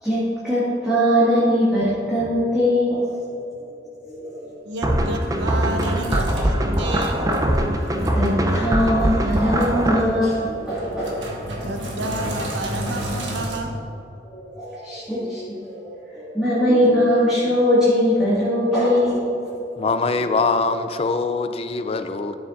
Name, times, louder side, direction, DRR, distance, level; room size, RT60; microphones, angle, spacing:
voice 1, 0.0-3.2 4.0-4.6 6.3-6.8 7.6-7.9 8.1-11.7 14.3-19.4 19.7-19.8, equal, 5° right, -12 dB, 1.9 m, -21 dB
voice 2, 4.6-7.2 11.5-13.8 15.3-15.4, right 1 dB, 75° right, 4 dB, 0.8 m, -30 dB
Sink (filling or washing), 4.7-13.6, right 1 dB, 90° right, 1.5 m, -33 dB
sound 1, 4.8-10.0, right 1 dB, 20° right, 0.6 m, -22 dB
voice 3, 19.8-22.4, left 4 dB, 35° left, 9 dB, 0.4 m, -23 dB
12.5 x 7.1 x 2.6 m, 2.9 s
head